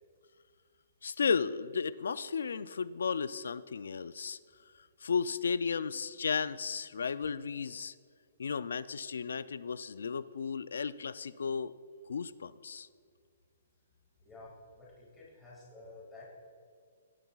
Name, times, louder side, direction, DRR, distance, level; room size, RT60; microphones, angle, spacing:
voice 1, 1.0-4.4 5.0-7.9 8.4-11.7 12.1-12.9, left 6 dB, 90° left, 16 dB, 0.4 m, -34 dB
voice 2, 14.2-16.4, left 2 dB, 10° left, -6 dB, 2.1 m, -51 dB
17.5 x 11.0 x 2.4 m, 2.1 s
hypercardioid pair, 165°, 0 cm